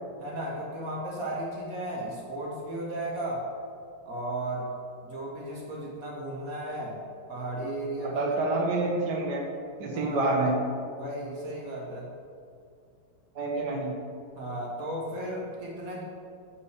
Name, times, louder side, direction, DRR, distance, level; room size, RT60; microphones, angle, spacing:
voice 1, 0.2-3.5 4.0-4.7 5.0-7.0 7.3-8.3 9.9-10.3 11.0-12.1 14.3-16.0, right 1 dB, 60° right, -2 dB, 1.4 m, -35 dB
voice 2, 8.0-9.5 9.8-10.6 13.4-13.9, right 2 dB, 80° right, 0 dB, 1.7 m, -27 dB
5.9 x 4.7 x 6.5 m, 2.4 s
omnidirectional pair, 1.8 m